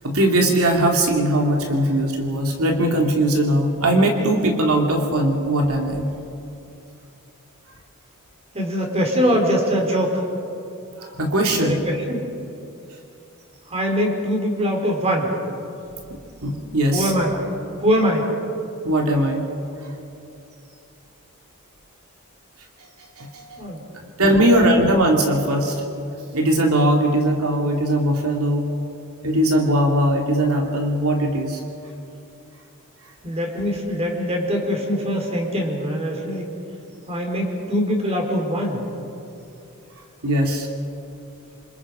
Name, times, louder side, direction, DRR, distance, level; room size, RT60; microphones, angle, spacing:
voice 1, 0.0-6.1 11.0-11.8 16.4-17.1 18.8-19.4 23.2-23.6 24.2-25.7 26.3-28.7 29.2-31.6 40.2-40.7, right 1 dB, 85° right, 1 dB, 2.6 m, -20 dB
voice 2, 8.5-10.2 11.6-12.2 13.7-15.3 16.9-17.4 17.8-18.3 23.6-23.8 24.3-24.5 33.2-36.5 37.1-38.8, equal, 30° right, 1 dB, 4.4 m, -22 dB
27.5 x 27.5 x 5.0 m, 2.7 s
head